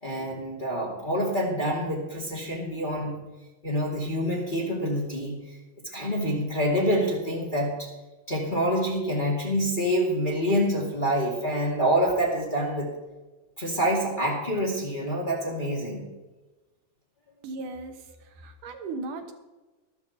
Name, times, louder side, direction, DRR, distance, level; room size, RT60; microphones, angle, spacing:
voice 1, 0.0-3.2 3.6-5.4 5.9-7.9 8.3-12.9 13.6-16.1, equal, 15° left, -3 dB, 2.2 m, -26 dB
voice 2, 17.4-18.0 18.4-19.3, right 3 dB, 75° right, 6 dB, 2.7 m, -36 dB
13.0 x 13.0 x 4.3 m, 1.2 s
omnidirectional pair, 3.7 m